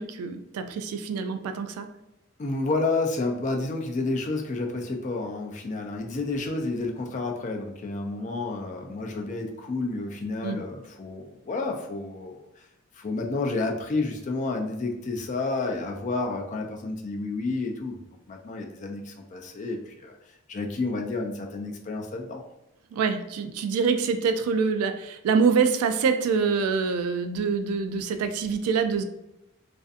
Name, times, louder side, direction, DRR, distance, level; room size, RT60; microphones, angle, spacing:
voice 1, 0.0-1.9 10.4-10.6 22.9-29.0, right 5 dB, 90° right, 7 dB, 0.3 m, -25 dB
voice 2, 2.4-12.5 12.9-20.1 20.5-22.4, left 3 dB, 35° left, 2 dB, 0.4 m, -30 dB
2.5 x 2.4 x 2.4 m, 0.88 s
head